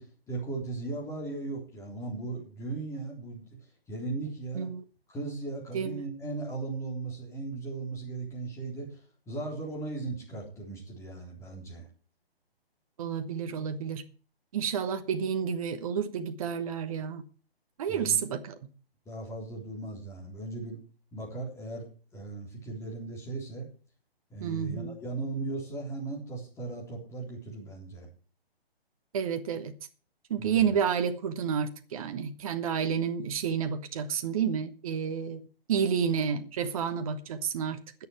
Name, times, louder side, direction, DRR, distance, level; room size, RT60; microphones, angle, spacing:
voice 1, 0.0-3.5 3.9-4.7 5.1-9.0 9.3-11.9 17.9-18.3 19.1-20.8 21.1-21.9 22.1-23.7 24.3-28.1 30.4-30.6, right 3 dB, 10° left, 3.7 m, -37 dB
voice 2, 5.7-6.0 13.0-14.0 14.5-17.2 17.8-18.5 24.4-25.0 29.1-29.7 30.3-35.4 35.7-37.8, right 7 dB, 35° right, 1.1 m, -30 dB
20.0 x 6.9 x 4.6 m
figure-of-eight pair, 140°, 31 cm